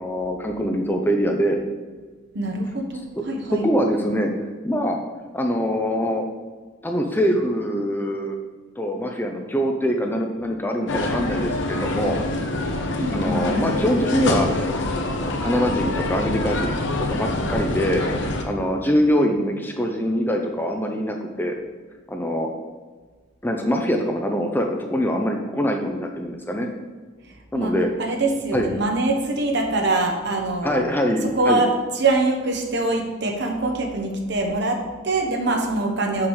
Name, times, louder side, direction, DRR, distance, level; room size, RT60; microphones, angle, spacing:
voice 1, 0.0-1.6 3.5-4.3 4.6-5.0 5.3-6.2 6.8-8.4 8.8-12.2 13.1-14.5 15.1-16.7 17.1-21.5 22.1-22.5 23.4-26.7 27.5-27.9 28.5-28.7 30.6-31.6, equal, 10° left, 3 dB, 0.5 m, -23 dB
voice 2, 2.3-3.6 13.0-13.8 27.5-27.7 28.0-30.8 31.3-36.3, right 2 dB, 55° right, 2 dB, 1.1 m, -24 dB
sound 1, 10.9-18.4, left 2 dB, 60° left, 0.8 m, -25 dB
6.0 x 4.8 x 6.4 m, 1.4 s
head